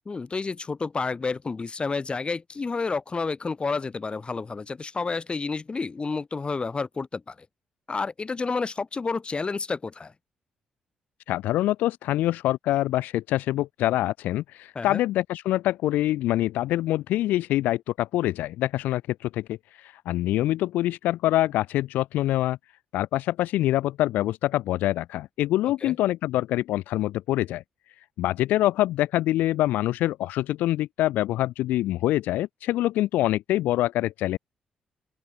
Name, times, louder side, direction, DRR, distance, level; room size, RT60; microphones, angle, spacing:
voice 1, 0.1-7.3 7.9-10.1 14.7-15.0 25.8-26.0, left 4 dB, 35° left, 5.9 m, -30 dB
voice 2, 11.3-22.6 22.9-27.6 28.2-34.4, left 15 dB, 85° left, 0.5 m, -25 dB
open air
supercardioid pair, 60°, 3 cm